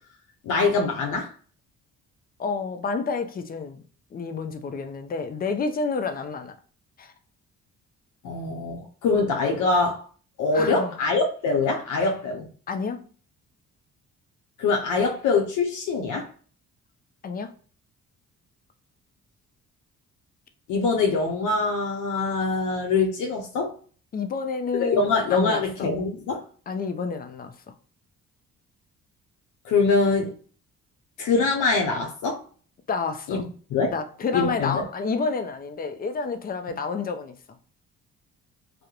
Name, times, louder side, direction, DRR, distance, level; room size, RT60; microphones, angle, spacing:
voice 1, 0.4-1.3 8.2-10.1 10.4-12.5 14.6-16.3 20.7-23.7 24.8-26.4 29.6-30.3 31.2-32.4 33.3-33.5 33.7-33.9 34.3-34.8, left 4 dB, 80° left, 0.6 m, -24 dB
voice 2, 2.4-3.8 4.1-6.5 7.0-7.1 10.5-10.9 12.7-13.0 17.2-17.5 24.1-25.9 26.7-27.5 32.9-33.4 33.9-37.3, left 4 dB, 30° left, 0.4 m, -29 dB
2.3 x 2.0 x 2.8 m
cardioid pair, 90°, 30 cm